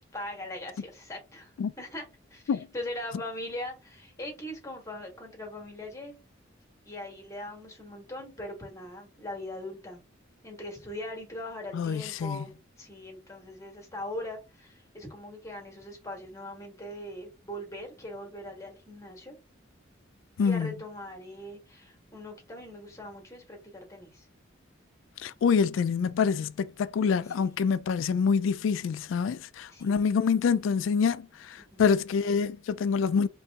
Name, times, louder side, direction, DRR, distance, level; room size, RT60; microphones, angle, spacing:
voice 1, 0.1-6.2 6.8-10.0 10.4-12.5 12.8-19.3 20.4-24.3 27.3-27.5 29.7-30.0 31.6-31.8, left 1 dB, 15° left, 1.4 m, -41 dB
voice 2, 11.7-12.4 20.4-20.7 25.2-33.3, left 6 dB, 75° left, 0.3 m, -26 dB
3.0 x 2.8 x 3.5 m
head